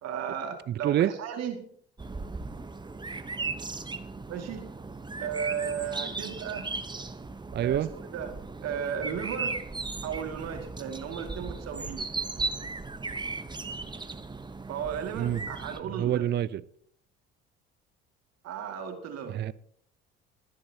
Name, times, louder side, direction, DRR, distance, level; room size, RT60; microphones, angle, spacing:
voice 1, 0.0-1.6 4.3-4.7 5.2-6.7 7.6-8.3 8.6-9.6 10.0-12.1 14.7-16.2 18.4-19.4, right 7 dB, 60° right, 4 dB, 2.2 m, -35 dB
voice 2, 0.7-1.1 7.5-7.9 15.1-15.4 15.8-16.6 19.3-19.5, right 11 dB, 35° right, 18 dB, 0.5 m, -27 dB
sound 1, 2.0-15.8, right 3 dB, 15° right, 1.0 m, -37 dB
21.5 x 10.0 x 2.9 m, 0.63 s
hypercardioid pair, 60°, 30 cm